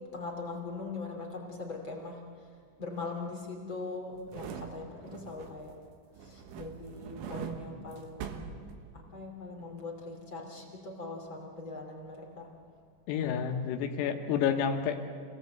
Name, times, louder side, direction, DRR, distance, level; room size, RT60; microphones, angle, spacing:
voice 1, 0.1-2.2 2.8-5.7 6.2-8.4 8.9-12.5, left 3 dB, 35° left, 0 dB, 2.4 m, -41 dB
sound 1, 4.1-5.8 6.2-9.2 9.6-9.7, right 6 dB, 70° right, 3.6 m, -43 dB
voice 2, 13.1-15.1, left 7 dB, 85° left, 4 dB, 4.0 m, -30 dB
27.5 x 18.0 x 8.1 m, 2.1 s
omnidirectional pair, 5.9 m